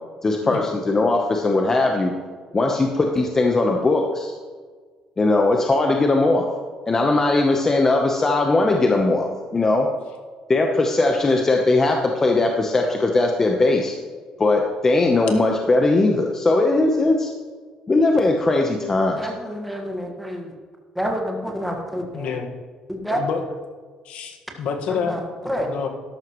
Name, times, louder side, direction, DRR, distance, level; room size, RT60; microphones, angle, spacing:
voice 1, 0.2-2.1 2.5-4.4 5.2-6.5 6.9-9.9 10.5-14.0 14.4-17.3 17.9-19.2, left 2 dB, 25° left, 2 dB, 0.9 m, -19 dB
voice 2, 19.2-20.5 20.9-22.3 22.9-23.2 24.9-25.7, equal, ahead, 1 dB, 1.6 m, -28 dB
voice 3, 22.1-22.5 23.0-23.4 24.0-25.1 25.7-25.9, left 6 dB, 70° left, 4 dB, 1.6 m, -28 dB
13.0 x 11.5 x 3.1 m, 1.5 s
cardioid pair, 130°, 2 cm